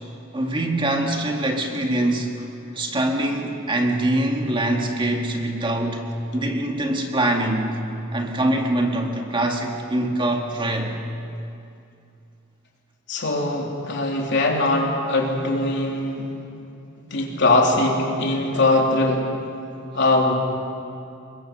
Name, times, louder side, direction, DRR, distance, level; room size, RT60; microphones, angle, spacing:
voice 1, 0.3-2.4 2.7-6.1 6.3-7.8 8.1-10.9, right 1 dB, 25° right, 2 dB, 2.0 m, -23 dB
voice 2, 13.1-16.3 17.1-19.3 19.9-20.4, left 2 dB, 60° left, 0 dB, 3.4 m, -21 dB
24.0 x 22.0 x 6.8 m, 2.6 s
head